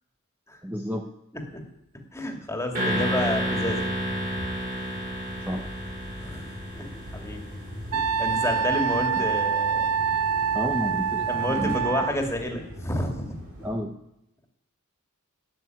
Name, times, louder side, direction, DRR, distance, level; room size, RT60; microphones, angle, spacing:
voice 1, 0.6-1.1 5.5-5.7 9.2-9.3 10.5-11.8 13.6-14.0, equal, 10° right, 2 dB, 0.9 m, -31 dB
voice 2, 2.1-3.9 6.2-6.5 6.8-7.4 7.9-9.9 10.3-10.5 11.3-13.3, left 1 dB, 15° left, 2 dB, 2.4 m, -30 dB
sound 1, 2.7-7.7, equal, 40° right, 6.6 m, -30 dB
sound 2, 2.9-13.7, left 1 dB, 60° right, 7.7 m, -40 dB
Wind instrument woodwind instrument, 7.9-12.1, right 7 dB, 75° right, 0.4 m, -25 dB
14.0 x 8.6 x 9.4 m, 0.83 s
head